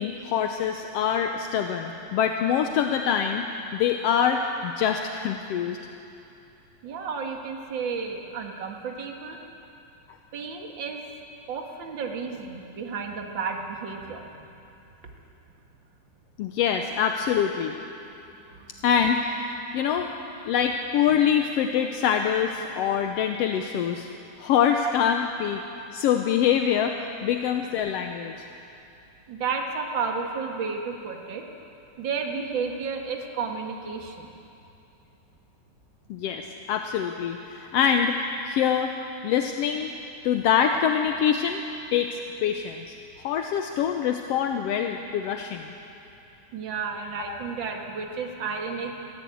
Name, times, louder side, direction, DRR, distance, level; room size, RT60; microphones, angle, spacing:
voice 1, 0.0-3.5 3.7-5.8 16.4-17.7 18.8-20.1 20.5-24.1 24.4-25.6 25.9-28.5 36.1-38.2 38.4-38.9 39.2-39.9 40.2-41.6 41.9-42.9 43.2-45.7 47.3-47.4, left 8 dB, 70° left, 5 dB, 1.6 m, -25 dB
voice 2, 6.8-9.4 10.3-11.0 11.5-14.5 18.5-18.7 29.3-31.5 32.0-34.3 46.5-48.9, right 5 dB, 45° right, 2 dB, 2.1 m, -32 dB
22.0 x 15.0 x 8.5 m, 2.8 s
omnidirectional pair, 3.4 m